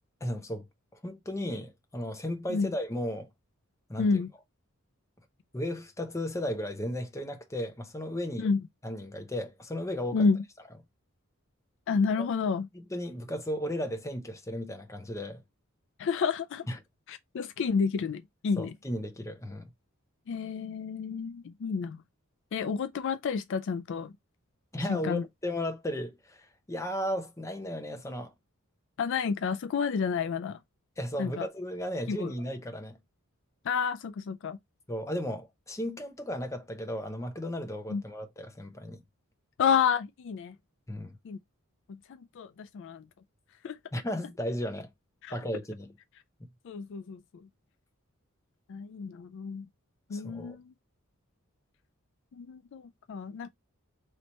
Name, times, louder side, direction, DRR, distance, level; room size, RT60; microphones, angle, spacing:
voice 1, 0.2-0.7 1.0-3.3 3.9-4.2 5.5-8.5 8.8-10.3 12.2-12.3 12.9-15.4 16.7-16.8 18.6-19.7 24.7-28.3 31.0-33.0 34.9-39.0 40.9-41.1 43.9-44.9 45.3-45.9 50.1-50.6, equal, 15° left, 0.7 m, -35 dB
voice 2, 4.0-4.3 8.4-8.6 10.1-10.4 11.9-12.7 16.0-16.7 17.1-18.7 20.3-22.0 22.5-24.1 24.9-25.2 29.0-30.6 31.2-31.5 32.1-32.3 33.6-34.6 37.9-38.0 39.6-40.5 41.2-41.4 41.9-43.0 43.6-43.8 45.2-45.3 46.6-47.2 48.7-49.7 50.1-50.7 52.4-53.5, left 5 dB, 60° left, 0.3 m, -30 dB
3.2 x 2.9 x 4.2 m
head